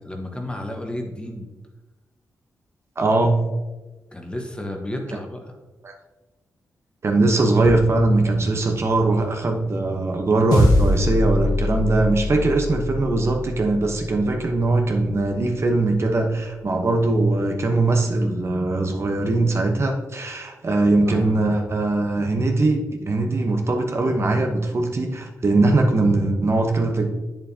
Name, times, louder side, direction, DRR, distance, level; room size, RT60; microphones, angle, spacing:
voice 1, 0.0-1.5 4.1-5.5 21.1-21.4, left 1 dB, 15° left, 2 dB, 1.3 m, -32 dB
voice 2, 3.0-3.4 5.8-5.9 7.0-27.0, right 2 dB, 45° right, 3 dB, 1.0 m, -21 dB
sound 1, 7.6-12.6 12.8-12.9, right 1 dB, ahead, 2.0 m, -40 dB
sound 2, 10.5-15.1, left 2 dB, 90° left, 1.5 m, -24 dB
8.2 x 7.0 x 2.8 m, 1.1 s
cardioid pair, 80°, 6 cm